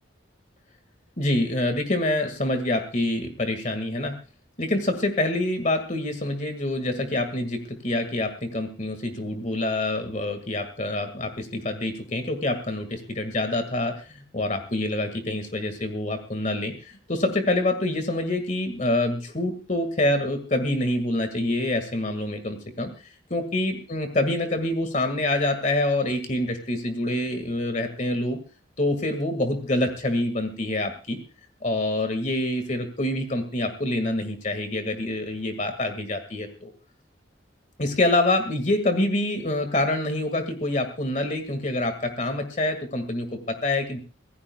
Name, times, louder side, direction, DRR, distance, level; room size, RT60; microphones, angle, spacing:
voice 1, 1.2-4.2 4.6-22.9 23.3-28.4 28.8-31.2 31.6-36.7 37.8-44.0, left 1 dB, 40° left, 7 dB, 2.0 m, -26 dB
24.5 x 16.5 x 2.4 m, 0.34 s
head